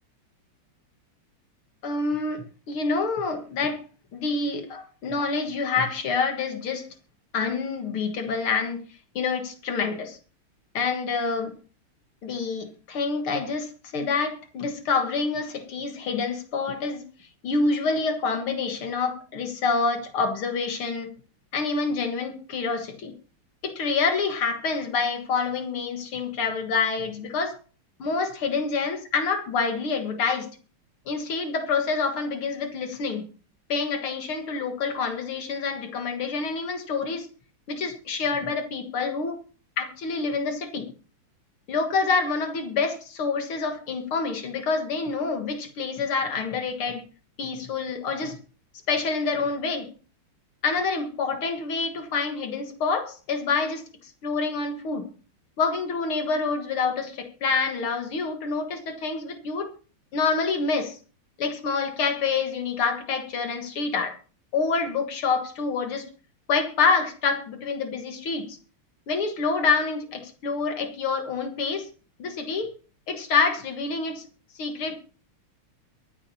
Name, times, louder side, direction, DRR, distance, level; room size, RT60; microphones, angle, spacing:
voice 1, 1.8-3.8 4.1-6.9 7.3-8.8 9.2-10.2 10.7-11.6 12.2-17.0 17.4-21.1 21.5-23.1 23.6-27.6 28.0-30.5 31.1-33.3 33.7-37.3 37.7-39.4 39.8-40.9 41.7-47.0 47.4-48.4 48.9-49.9 50.6-55.1 55.6-59.7 60.1-61.0 61.4-64.2 64.5-66.1 66.5-68.6 69.1-71.9 72.2-72.7 73.1-74.2 74.6-75.0, left 4 dB, 75° left, 2.4 m, -27 dB
23.5 x 8.7 x 2.8 m
omnidirectional pair, 2.4 m